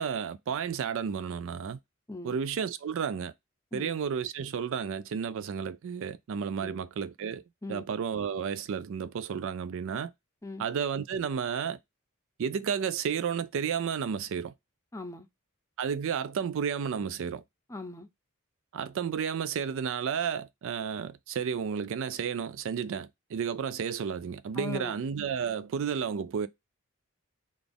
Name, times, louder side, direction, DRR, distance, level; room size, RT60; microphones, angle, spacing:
voice 1, 0.0-1.8 2.2-3.3 3.7-7.4 7.7-10.1 10.6-11.8 12.4-14.5 15.8-17.4 18.7-26.5, right 7 dB, 65° right, 0.4 m, -32 dB
voice 2, 14.9-15.3 17.7-18.1 24.6-25.0, left 2 dB, 15° left, 0.5 m, -39 dB
4.0 x 2.4 x 3.4 m
head